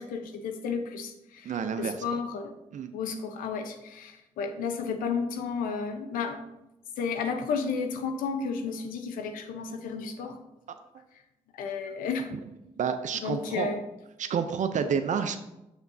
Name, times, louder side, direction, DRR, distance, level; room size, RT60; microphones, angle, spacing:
voice 1, 0.0-2.5 2.9-6.4 7.0-10.4 11.5-12.3 13.2-13.8, left 5 dB, 90° left, 6 dB, 0.8 m, -32 dB
voice 2, 1.4-2.0 2.7-2.9 10.7-10.8 12.8-13.7 14.2-15.4, right 6 dB, 65° right, 8 dB, 0.5 m, -29 dB
7.1 x 6.9 x 2.7 m, 0.93 s
supercardioid pair, 55°, 14 cm